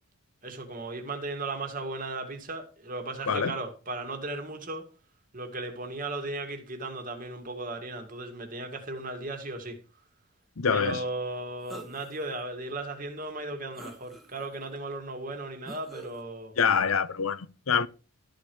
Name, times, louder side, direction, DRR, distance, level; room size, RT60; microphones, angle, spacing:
voice 1, 0.4-4.9 5.3-9.8 10.7-16.5, right 2 dB, 35° right, 2.3 m, -36 dB
voice 2, 10.6-11.0 16.6-17.9, left 6 dB, 70° left, 0.7 m, -25 dB
sound 1, 11.7-12.3 12.8-12.9 13.7-14.6 15.7-16.2, right 1 dB, ahead, 1.4 m, -45 dB
13.5 x 5.2 x 6.3 m
head